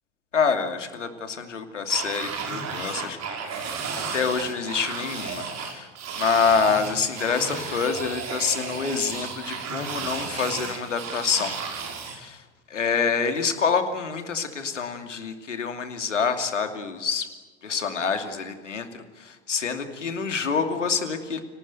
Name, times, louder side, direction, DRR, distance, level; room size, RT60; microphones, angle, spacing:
voice 1, 0.3-5.9 6.1-11.6 12.0-12.4 12.7-17.3 17.6-21.4, left 5 dB, 85° left, 7 dB, 2.7 m, -27 dB
sound 1, 1.9-12.2, right 5 dB, 45° right, 5.5 m, -33 dB
29.5 x 19.5 x 9.3 m, 1.3 s
hypercardioid pair, 70°, 35 cm